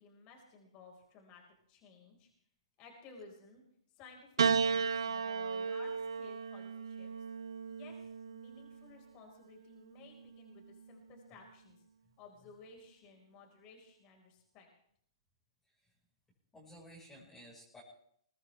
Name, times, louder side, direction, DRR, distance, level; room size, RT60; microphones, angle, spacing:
voice 1, 0.0-1.4 1.7-2.3 2.8-3.6 3.9-7.1 7.6-7.9 8.2-11.8 12.2-14.7, left 4 dB, 30° left, 1 dB, 5.0 m, -56 dB
Piano, 4.4-8.9 9.9-10.7, right 5 dB, 65° right, 0.7 m, -34 dB
voice 2, 16.5-17.8, equal, 10° left, -4 dB, 5.1 m, -55 dB
22.5 x 18.0 x 3.4 m, 0.68 s
figure-of-eight pair, 115°, 3 cm